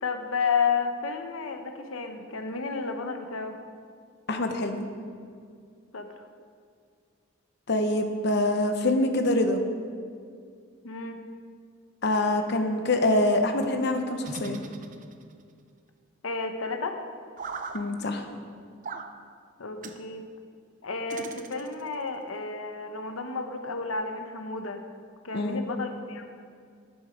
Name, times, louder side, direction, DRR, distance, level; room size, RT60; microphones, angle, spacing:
voice 1, 0.0-3.6 5.9-6.2 10.8-11.2 16.2-17.0 19.6-20.3 20.8-24.8 25.2-26.2, left 5 dB, 90° left, 6 dB, 0.9 m, -31 dB
voice 2, 4.3-4.8 7.7-9.6 12.0-14.6 17.7-18.3 25.3-25.6, left 1 dB, 55° left, 5 dB, 0.8 m, -25 dB
sound 1, 14.2-15.4 17.4-17.8 18.8-19.1 19.8-20.0 21.1-22.0, right 4 dB, 40° right, 0.5 m, -39 dB
10.0 x 7.7 x 5.0 m, 2.2 s
head